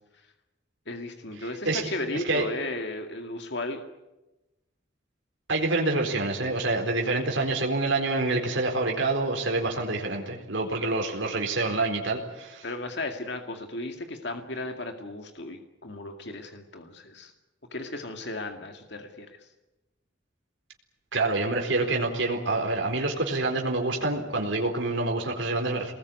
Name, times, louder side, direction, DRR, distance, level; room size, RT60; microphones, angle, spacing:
voice 1, 0.9-3.8 12.6-17.3 17.7-19.5, left 2 dB, 65° left, 5 dB, 2.2 m, -35 dB
voice 2, 2.1-2.5 5.5-12.7 21.1-25.9, right 2 dB, 80° right, 1 dB, 4.3 m, -27 dB
24.5 x 20.5 x 9.4 m, 1.0 s
head